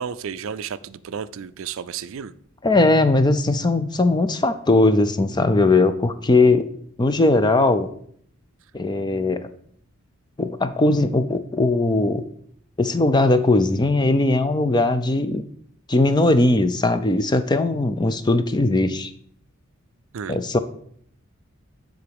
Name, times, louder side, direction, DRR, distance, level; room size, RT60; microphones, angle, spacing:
voice 1, 0.0-2.3 20.1-20.4, right 7 dB, 65° right, 0.4 m, -32 dB
voice 2, 2.6-6.6 7.0-7.9 8.7-9.5 10.4-12.3 12.8-15.4 15.9-19.1 20.3-20.6, left 2 dB, 20° left, 0.5 m, -19 dB
9.8 x 3.9 x 6.9 m
head